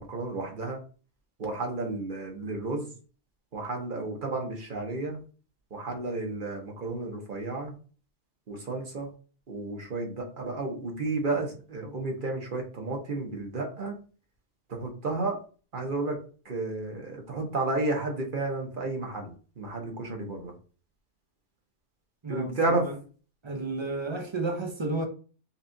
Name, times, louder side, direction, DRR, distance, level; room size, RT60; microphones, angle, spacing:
voice 1, 0.1-0.8 1.4-2.9 3.5-5.2 5.7-7.7 8.5-9.1 9.5-14.0 14.7-15.4 15.7-16.2 16.4-19.3 19.6-20.5 22.3-22.9, right 2 dB, 45° right, 1.0 m, -32 dB
voice 2, 22.2-23.0 23.4-25.1, right 2 dB, 30° right, 0.6 m, -32 dB
5.5 x 2.4 x 2.6 m
omnidirectional pair, 1.3 m